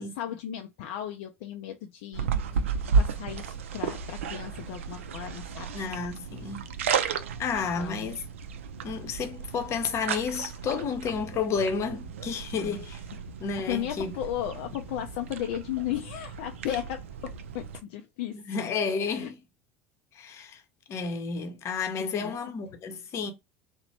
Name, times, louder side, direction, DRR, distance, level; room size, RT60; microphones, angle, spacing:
voice 1, 0.0-2.3 2.5-2.7 3.0-5.7 7.8-8.1 12.6-12.8 13.7-18.6 19.0-19.3 22.0-22.4, left 12 dB, 65° left, 0.4 m, -35 dB
sound 1, 2.1-17.8, right 6 dB, 75° right, 0.3 m, -33 dB
voice 2, 5.7-6.7 7.4-8.2 8.8-13.0 13.4-14.1 18.3-19.4 20.1-20.6 20.9-23.3, left 5 dB, 45° left, 0.8 m, -31 dB
2.9 x 2.1 x 2.7 m
figure-of-eight pair, 70°, 7 cm